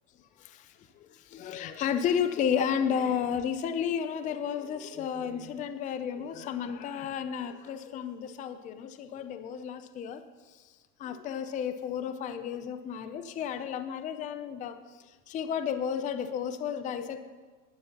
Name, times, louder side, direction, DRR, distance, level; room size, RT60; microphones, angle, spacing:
voice 1, 0.4-10.2 10.5-10.6 11.0-14.8 15.1-17.2, left 8 dB, 15° left, 10 dB, 0.4 m, -32 dB
19.5 x 11.0 x 2.9 m, 1.4 s
supercardioid pair, 125°, 49 cm